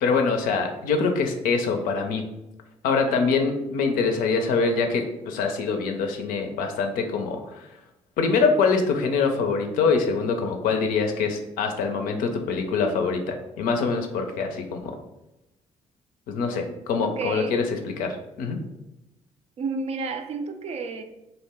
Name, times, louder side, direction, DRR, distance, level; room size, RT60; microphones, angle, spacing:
voice 1, 0.0-2.2 2.8-7.6 8.2-14.9 16.3-18.6, left 4 dB, 65° left, 5 dB, 0.4 m, -24 dB
voice 2, 17.2-17.6 19.6-21.0, right 4 dB, 45° right, 7 dB, 0.4 m, -31 dB
2.4 x 2.1 x 3.3 m, 0.92 s
figure-of-eight pair, 40°, 16 cm